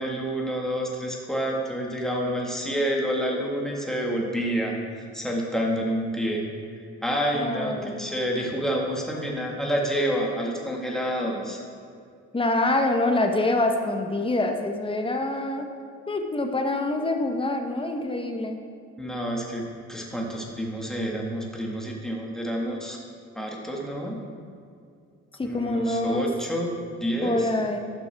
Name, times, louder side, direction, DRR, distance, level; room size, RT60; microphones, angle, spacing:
voice 1, 0.0-6.4 6.8-11.6 19.0-23.0 23.3-24.2 25.4-27.5, equal, ahead, -2 dB, 1.6 m, -28 dB
voice 2, 7.3-8.1 12.3-15.7 16.1-18.6 25.4-26.3 27.2-27.9, left 2 dB, 15° left, 4 dB, 0.9 m, -25 dB
11.0 x 6.0 x 3.4 m, 2.3 s
cardioid pair, 90°, 30 cm